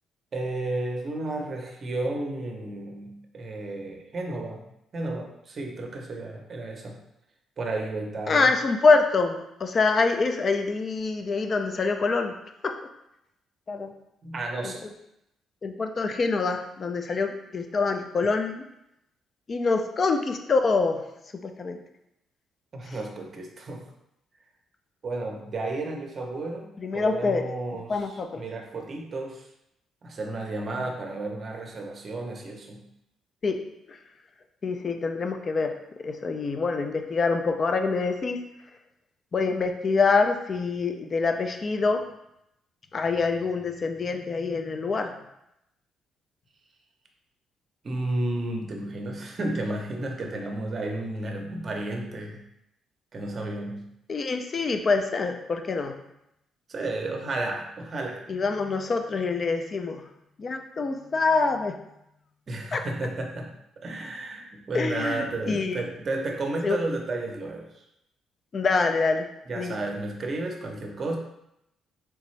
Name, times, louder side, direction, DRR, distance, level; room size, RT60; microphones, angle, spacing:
voice 1, 0.3-4.6 4.9-7.0 7.6-8.5 14.2-14.8 22.7-23.9 25.0-29.4 30.0-32.8 47.8-52.4 53.1-53.8 56.7-58.2 62.5-63.5 63.8-67.7 69.5-71.2, right 2 dB, 35° right, 2 dB, 0.7 m, -32 dB
voice 2, 8.3-12.4 12.6-12.7 13.7-13.9 14.6-14.7 15.6-18.6 19.5-21.0 21.3-21.8 22.9-23.0 26.8-27.5 27.9-28.4 33.4-33.6 33.9-34.0 34.6-35.7 36.0-38.4 39.3-42.0 42.9-45.1 54.1-55.9 58.3-60.0 60.4-61.8 62.7-62.8 64.7-65.8 66.6-66.8 68.5-69.3 69.6-69.7, left 4 dB, 35° left, 6 dB, 0.4 m, -25 dB
3.8 x 3.4 x 3.2 m, 0.82 s
cardioid pair, 135°, 0 cm